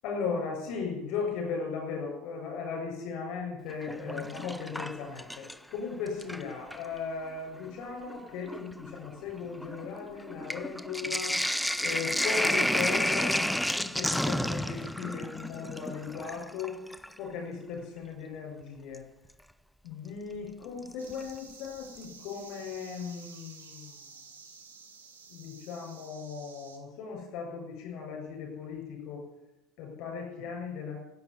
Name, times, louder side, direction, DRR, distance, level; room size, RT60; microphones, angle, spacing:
voice 1, 0.0-11.4 11.8-16.8 17.2-19.0 19.8-24.0 25.3-29.2 29.8-31.0, left 5 dB, 55° left, 1 dB, 7.4 m, -37 dB
Sink (filling or washing), 3.7-5.7 6.1-6.9 7.7-7.8 8.1-17.2 18.9-19.0 20.9-21.3 21.6-21.7 22.0-22.1, equal, 5° left, 0.5 m, -31 dB
sound 1, 21.0-26.8, right 5 dB, 80° right, 2.2 m, -51 dB
16.0 x 9.1 x 8.3 m, 0.85 s
figure-of-eight pair, 70°, 0 cm